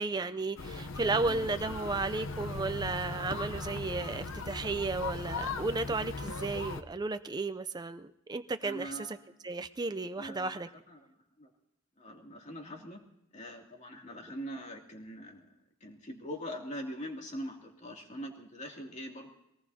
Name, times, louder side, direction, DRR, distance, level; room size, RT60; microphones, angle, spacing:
voice 1, 0.0-9.2 9.4-10.7, right 3 dB, 20° right, 10 dB, 0.5 m, -34 dB
sound 1, 0.6-6.8, left 3 dB, 70° left, 0.8 m, -38 dB
voice 2, 1.0-1.5 8.6-9.2 10.2-11.1 11.4-11.5 12.0-13.0 13.3-15.5 15.8-19.3, equal, 35° left, 1 dB, 2.6 m, -43 dB
23.0 x 18.5 x 2.8 m, 0.81 s
head